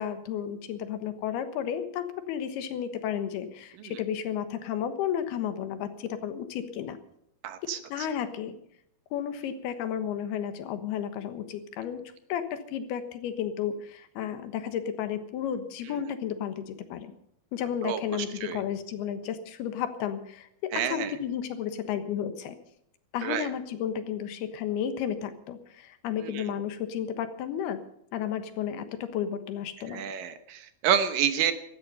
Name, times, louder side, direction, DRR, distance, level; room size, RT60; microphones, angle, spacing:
voice 1, 0.0-7.0 7.6-8.6 9.1-12.0 12.3-17.1 17.5-22.6 23.1-27.8 28.1-30.0, left 9 dB, 90° left, 9 dB, 3.3 m, -33 dB
voice 2, 7.4-8.1 15.9-16.0 17.8-18.0 18.4-18.6 20.7-21.1 23.2-23.5 26.2-26.4 29.9-31.5, right 9 dB, 70° right, 10 dB, 2.6 m, -29 dB
16.5 x 13.0 x 5.5 m, 0.75 s
omnidirectional pair, 4.4 m